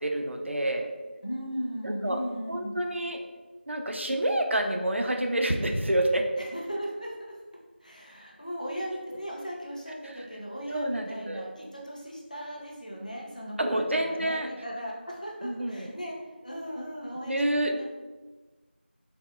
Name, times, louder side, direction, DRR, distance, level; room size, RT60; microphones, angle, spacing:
voice 1, 0.0-0.9 1.8-2.2 2.5-3.2 3.7-6.3 10.0-10.2 10.7-11.5 13.6-14.5 15.4-15.9 17.3-17.7, right 1 dB, 85° right, 3 dB, 0.4 m, -28 dB
voice 2, 1.2-2.8 6.4-7.4 7.8-13.6 14.0-17.8, equal, 40° left, -3 dB, 0.5 m, -37 dB
3.4 x 2.0 x 2.2 m, 1.2 s
figure-of-eight pair, 180°, 6 cm